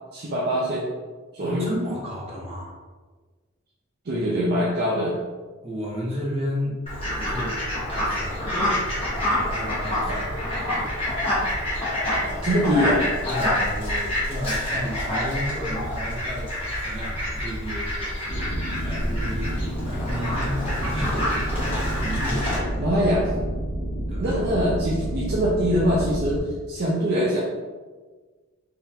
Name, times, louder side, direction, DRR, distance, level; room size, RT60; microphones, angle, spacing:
voice 1, 0.1-0.9 1.3-1.7 4.0-5.2 10.1-10.2 12.2-13.1 22.8-23.3 24.2-27.4, equal, 50° right, -5 dB, 0.5 m, -23 dB
voice 2, 1.4-2.8 5.6-6.8 7.1-11.0 13.3-22.8 24.1-24.3, equal, 30° right, -5 dB, 0.9 m, -33 dB
Fowl, 6.9-22.6, left 1 dB, 25° left, 1.2 m, -27 dB
sound 1, 18.3-26.4, right 1 dB, 45° left, 1.3 m, -29 dB
3.8 x 3.1 x 2.8 m, 1.4 s
head